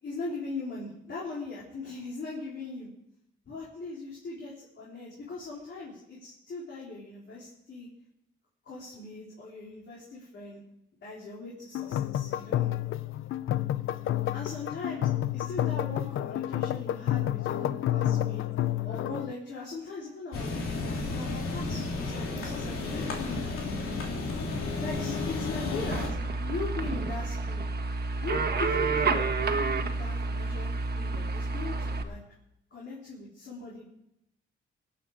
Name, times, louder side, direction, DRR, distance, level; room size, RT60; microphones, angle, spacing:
voice 1, 0.0-2.9 3.5-7.9 8.6-10.6 11.0-12.8 14.3-23.5 24.8-27.7 28.2-32.2 32.7-33.8, left 3 dB, 60° left, -5 dB, 4.0 m, -40 dB
sound 1, 11.7-19.3, left 12 dB, 75° left, 0.5 m, -30 dB
sound 2, 20.3-26.1, left 3 dB, 90° left, 3.0 m, -32 dB
sound 3, 25.9-32.0, right 4 dB, 50° right, 1.5 m, -29 dB
24.0 x 8.7 x 4.9 m, 0.82 s
cardioid pair, 115°, 21 cm